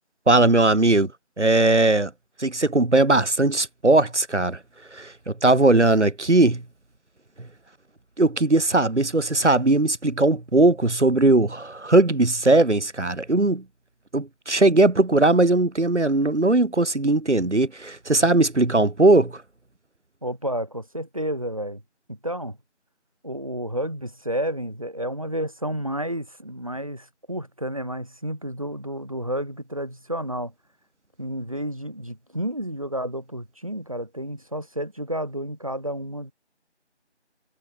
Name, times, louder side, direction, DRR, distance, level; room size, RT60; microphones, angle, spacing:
voice 1, 0.3-1.1 1.4-2.1 2.4-4.6 4.9-6.6 8.2-13.6 14.1-19.4, right 2 dB, 80° right, 1.6 m, -19 dB
voice 2, 20.2-21.8 22.1-22.6 23.2-30.5 31.2-36.3, equal, 30° right, 5.3 m, -31 dB
figure-of-eight pair, 175°, 35 cm